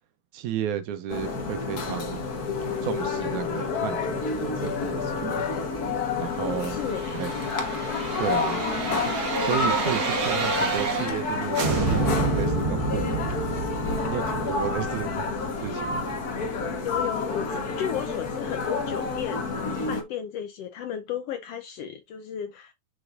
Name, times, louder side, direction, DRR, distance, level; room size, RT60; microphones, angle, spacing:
voice 1, 0.3-2.3 2.6-5.5 6.2-6.8 7.1-7.3 8.2-13.2 14.1-15.2 15.6-16.1, right 9 dB, 75° right, 2.3 m, -33 dB
sound 1, 1.1-20.0, left 4 dB, 50° left, 1.1 m, -29 dB
voice 2, 6.4-7.2 14.5-14.8 16.8-22.7, left 9 dB, 80° left, 1.4 m, -34 dB
sound 2, 6.5-11.3 11.5-16.4 16.8-16.9, right 4 dB, 45° right, 2.1 m, -29 dB
6.5 x 6.1 x 2.6 m
omnidirectional pair, 3.7 m